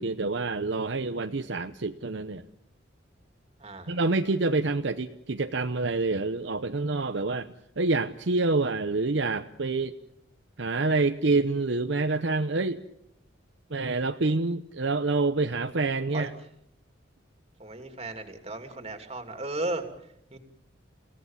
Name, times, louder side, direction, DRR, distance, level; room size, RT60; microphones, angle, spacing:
voice 1, 0.0-2.4 3.9-7.5 7.8-10.0 10.6-12.8 13.7-16.3, right 3 dB, 60° right, 7 dB, 0.8 m, -27 dB
voice 2, 3.6-4.0 16.1-16.3 17.6-19.8 20.3-20.4, right 2 dB, 30° right, 6 dB, 2.8 m, -35 dB
29.5 x 17.0 x 7.3 m, 0.78 s
head